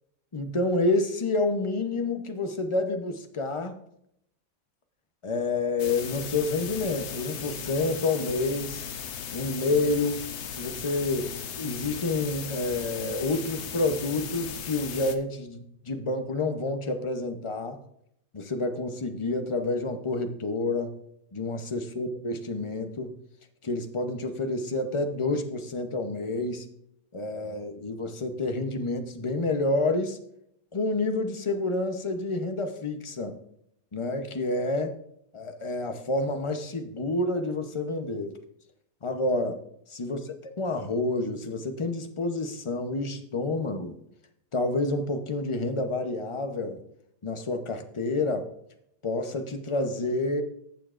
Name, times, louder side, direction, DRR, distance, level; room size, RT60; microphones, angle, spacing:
voice 1, 0.3-3.8 5.2-8.8 9.3-17.8 18.3-20.9 21.3-23.1 23.6-26.7 27.1-30.2 30.7-33.4 33.9-34.9 35.3-38.4 39.0-39.6 39.9-44.0 44.5-46.8 47.2-48.5 49.0-50.4, left 2 dB, 30° left, 7 dB, 0.7 m, -29 dB
sound 1, 5.8-15.2, left 7 dB, 60° left, 0.9 m, -37 dB
15.0 x 7.0 x 2.5 m, 0.73 s
omnidirectional pair, 1.5 m